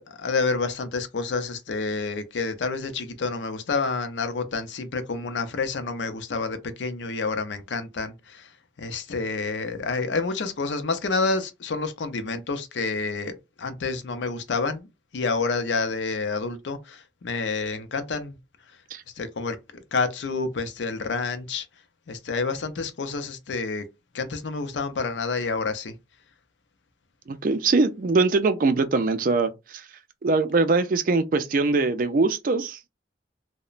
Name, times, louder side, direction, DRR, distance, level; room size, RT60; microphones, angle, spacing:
voice 1, 0.0-8.5 8.8-14.9 15.1-18.4 19.2-19.6 19.9-21.7 22.1-23.9 24.1-25.9, left 4 dB, 80° left, 0.5 m, -28 dB
voice 2, 27.3-29.8 30.2-32.8, right 3 dB, 45° right, 0.4 m, -22 dB
2.9 x 2.1 x 2.4 m
head